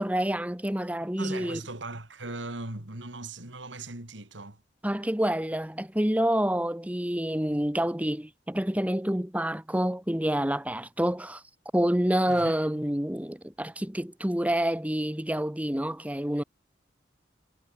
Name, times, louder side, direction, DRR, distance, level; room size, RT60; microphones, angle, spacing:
voice 1, 0.0-1.6 4.8-11.4 11.7-16.4, right 1 dB, 10° right, 1.4 m, -28 dB
voice 2, 1.2-4.6 12.3-12.6, right 2 dB, 90° right, 3.3 m, -39 dB
head